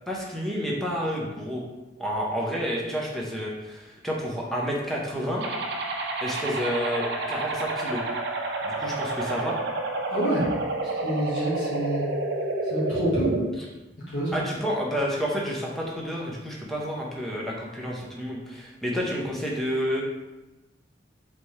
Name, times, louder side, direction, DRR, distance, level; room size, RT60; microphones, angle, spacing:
voice 1, 0.1-1.6 2.0-5.5 6.2-8.0 8.6-9.6 14.3-20.0, equal, ahead, -3 dB, 0.7 m, -30 dB
sound 1, 5.4-13.4, right 2 dB, 65° right, 0.5 m, -29 dB
voice 2, 10.1-10.5 10.8-12.1 12.7-13.3 14.1-14.4, right 1 dB, 75° left, -9 dB, 1.4 m, -27 dB
4.1 x 3.4 x 3.1 m, 1.0 s
head